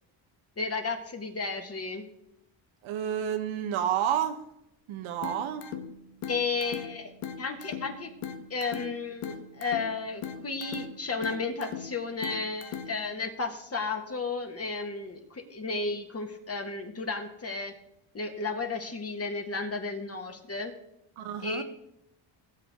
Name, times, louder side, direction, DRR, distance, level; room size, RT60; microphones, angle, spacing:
voice 1, 0.6-2.1 6.3-7.1 7.4-8.1 8.5-17.7 18.1-20.7 21.4-21.6, left 4 dB, 30° left, 4 dB, 1.8 m, -33 dB
voice 2, 2.8-4.4 4.9-5.7 21.2-21.6, right 9 dB, 75° right, 8 dB, 1.3 m, -30 dB
sound 1, 5.2-13.2, left 7 dB, 90° left, 1.4 m, -41 dB
17.5 x 7.8 x 3.8 m, 0.81 s
cardioid pair, 95°, 48 cm